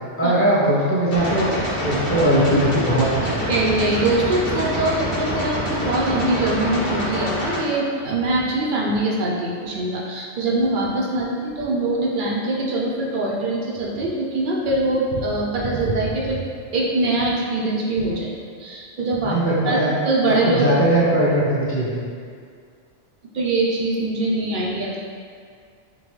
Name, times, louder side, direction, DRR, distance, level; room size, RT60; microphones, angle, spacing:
voice 1, 0.2-1.5 1.8-3.5 19.2-19.9 20.3-22.0, right 1 dB, 10° left, -9 dB, 0.9 m, -20 dB
sound 1, 1.1-7.6, left 1 dB, 50° left, 1.1 m, -26 dB
voice 2, 3.5-16.4 16.7-19.4 19.6-19.8 20.1-20.8 23.3-25.0, right 2 dB, 55° right, -4 dB, 0.6 m, -23 dB
3.7 x 3.4 x 3.2 m, 2.2 s
omnidirectional pair, 1.3 m